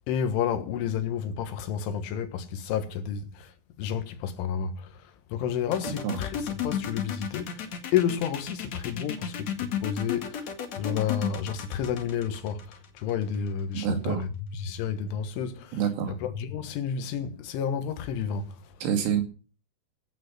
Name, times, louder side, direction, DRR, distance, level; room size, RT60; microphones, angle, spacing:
voice 1, 0.1-15.8 16.1-18.8, left 8 dB, 75° left, 3.8 m, -31 dB
sound 1, 5.7-13.5, left 8 dB, 50° left, 2.2 m, -33 dB
voice 2, 13.7-14.2 15.7-16.2 18.8-19.2, right 8 dB, 90° right, 5.1 m, -27 dB
15.5 x 9.4 x 6.1 m
omnidirectional pair, 5.6 m